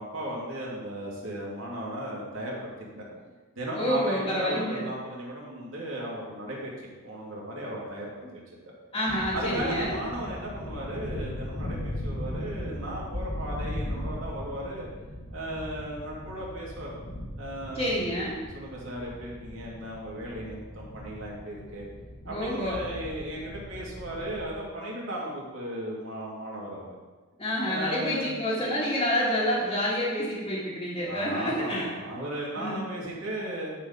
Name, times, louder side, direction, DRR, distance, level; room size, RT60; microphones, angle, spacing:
voice 1, 0.0-3.0 3.6-8.4 9.3-14.9 15.3-17.0 17.3-17.9 18.5-21.8 22.2-26.9 27.7-28.3 31.1-33.7, right 1 dB, 70° right, -4 dB, 2.4 m, -36 dB
voice 2, 3.8-4.9 8.9-10.0 17.7-18.4 20.4-20.5 22.3-22.8 27.4-32.0 32.6-32.8, equal, 25° left, -10 dB, 1.8 m, -28 dB
sound 1, 9.1-24.4, left 1 dB, 65° left, 1.4 m, -38 dB
9.9 x 4.5 x 5.4 m, 1.3 s
head